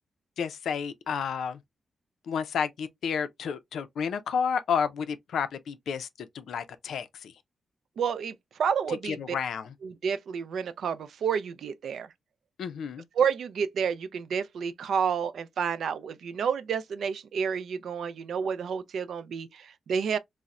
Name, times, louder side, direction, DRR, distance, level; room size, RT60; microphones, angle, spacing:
voice 1, 0.4-1.6 2.3-7.3 8.9-9.7 12.6-13.1, left 7 dB, 90° left, 0.4 m, -31 dB
voice 2, 8.0-9.2 9.8-12.1 13.2-20.2, right 7 dB, 75° right, 0.3 m, -30 dB
4.0 x 2.0 x 2.3 m
wide cardioid pair, 165°, 0 cm